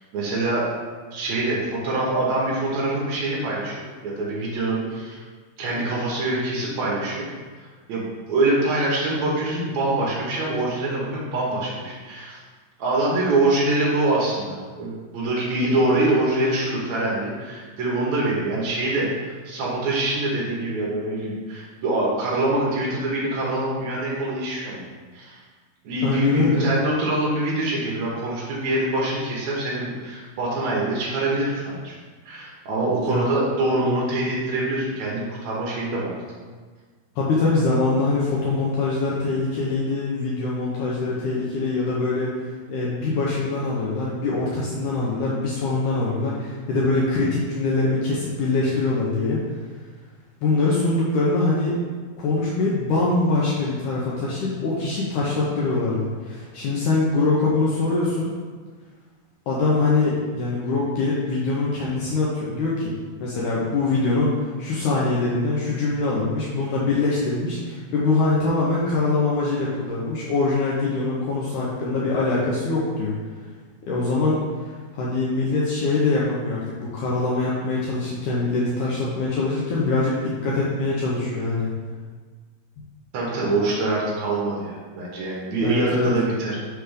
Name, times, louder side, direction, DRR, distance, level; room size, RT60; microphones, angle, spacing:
voice 1, 0.1-0.7 1.1-5.2 5.6-7.3 7.6-12.4 12.8-24.9 25.1-25.4 25.8-32.0 32.3-36.2 83.1-86.6, right 2 dB, 65° right, -4 dB, 1.8 m, -24 dB
voice 2, 26.0-26.7 33.1-33.3 37.2-42.4 42.7-49.4 50.4-51.8 52.2-58.3 59.5-62.9 63.2-64.3 64.6-73.1 73.8-74.4 74.9-81.7 85.6-86.1, left 3 dB, 80° left, -5 dB, 1.8 m, -23 dB
6.2 x 3.4 x 5.0 m, 1.5 s
omnidirectional pair, 4.5 m